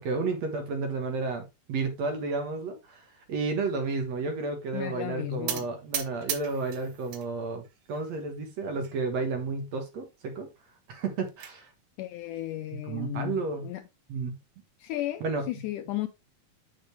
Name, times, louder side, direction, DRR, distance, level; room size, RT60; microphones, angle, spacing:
voice 1, 0.0-10.5 10.9-11.7 12.9-13.7 14.1-14.4 15.2-15.5, right 4 dB, 60° right, 2.1 m, -32 dB
voice 2, 4.7-5.7 12.0-13.8 14.8-16.1, left 15 dB, 80° left, 1.8 m, -34 dB
sound 1, 5.5-7.3 7.6-8.3 8.8-8.9 9.2-9.3 9.7-9.8 10.9-11.5, right 10 dB, 85° right, 3.1 m, -36 dB
7.5 x 6.6 x 3.3 m
omnidirectional pair, 4.1 m